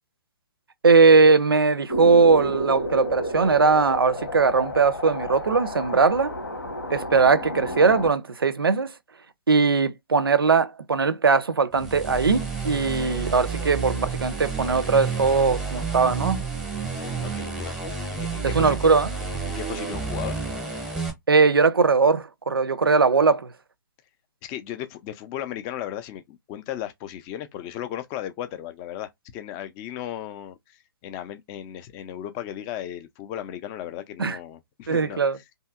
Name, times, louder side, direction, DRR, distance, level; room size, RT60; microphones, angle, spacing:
voice 1, 0.8-6.3 6.9-8.9 9.5-16.4 18.5-19.1 21.3-23.5 34.2-34.4 34.9-35.4, right 4 dB, 80° right, 0.4 m, -20 dB
sound 1, 1.9-8.1, equal, 80° left, 1.2 m, -31 dB
sound 2, 11.7-21.1, right 4 dB, 5° right, 0.8 m, -30 dB
voice 2, 17.0-18.9 19.5-20.4 24.4-30.6 31.0-35.6, left 11 dB, 20° left, 0.4 m, -36 dB
2.7 x 2.7 x 2.3 m
figure-of-eight pair, 130°, 12 cm